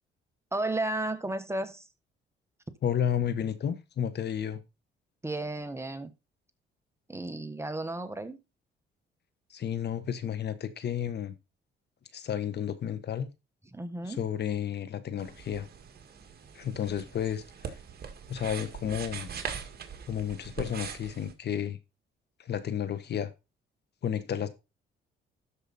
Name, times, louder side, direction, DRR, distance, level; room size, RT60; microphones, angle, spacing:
voice 1, 0.5-1.9 5.2-6.1 7.1-8.4 13.7-14.2, right 2 dB, 15° right, 1.3 m, -33 dB
voice 2, 2.8-4.6 9.5-11.4 12.1-13.3 14.0-15.7 16.5-17.8 18.3-19.3 20.1-21.8 22.4-23.3 24.0-24.5, left 9 dB, 60° left, 1.3 m, -32 dB
sound 1, 15.2-21.3, right 7 dB, 50° right, 2.0 m, -42 dB
12.5 x 5.0 x 4.2 m
cardioid pair, 90°, 20 cm